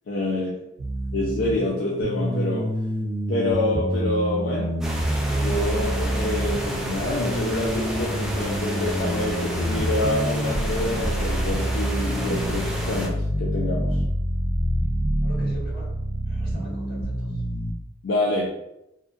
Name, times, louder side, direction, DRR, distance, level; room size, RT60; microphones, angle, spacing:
voice 1, 0.1-0.5 1.1-2.7 3.3-4.7 5.3-14.0 18.0-18.5, left 2 dB, 75° left, -3 dB, 0.4 m, -27 dB
sound 1, 0.8-17.7, right 1 dB, 85° right, 0.6 m, -27 dB
sound 2, 4.8-13.1, equal, ahead, 0.3 m, -31 dB
voice 2, 15.2-16.0 16.3-17.4, equal, 55° left, -7 dB, 1.4 m, -42 dB
2.7 x 2.1 x 2.4 m, 0.85 s
head